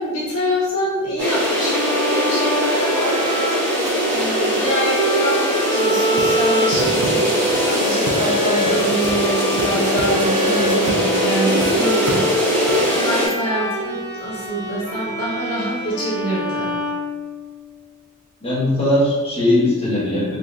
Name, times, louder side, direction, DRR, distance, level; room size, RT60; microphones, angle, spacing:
voice 1, 0.0-16.9, right 1 dB, 65° left, -7 dB, 1.0 m, -25 dB
sound 1, 1.2-13.3, equal, 30° right, 1.2 m, -21 dB
Bowed string instrument, 1.5-17.6, equal, 15° right, 0.8 m, -26 dB
sound 2, 6.2-7.6 8.0-8.7 9.0-11.1 11.4-11.7 12.1-12.9, right 3 dB, 90° right, 0.5 m, -32 dB
voice 2, 18.4-20.4, left 1 dB, 25° left, -9 dB, 1.3 m, -19 dB
3.8 x 2.9 x 2.5 m, 1.3 s
head